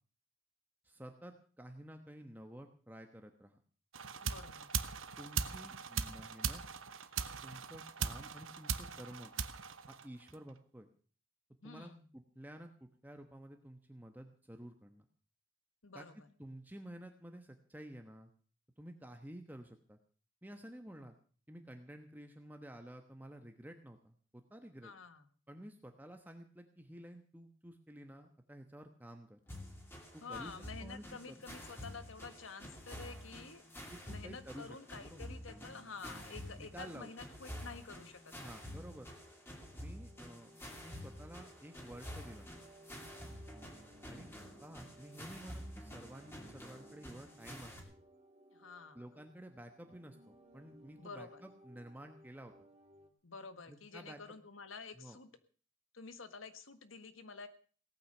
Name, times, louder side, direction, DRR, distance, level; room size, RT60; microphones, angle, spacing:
voice 1, 0.8-3.6 5.2-6.6 7.4-9.3 9.9-10.9 11.6-15.1 15.9-16.1 16.4-18.3 18.8-20.0 20.4-21.1 21.5-24.9 25.5-29.4 30.1-31.4 33.9-34.8 35.0-35.3 36.6-37.1 38.4-39.1 39.7-40.5 40.8-42.5 44.1-44.3 44.6-47.8 48.9-52.5 53.7-54.4 55.0-55.2, right 1 dB, 10° right, 5 dB, 1.1 m, -52 dB
sound 1, 3.9-10.5, right 6 dB, 85° right, 1.0 m, -40 dB
voice 2, 4.2-4.7 11.6-12.0 15.8-16.3 24.8-25.2 30.2-38.3 48.5-49.1 51.0-51.4 53.2-55.3 55.9-57.5, left 4 dB, 85° left, 10 dB, 1.5 m, -50 dB
sound 2, 29.5-47.8, equal, 10° left, 2.7 m, -49 dB
sound 3, 38.0-53.1, equal, 30° right, 2.1 m, -62 dB
18.0 x 9.0 x 6.6 m, 0.42 s
head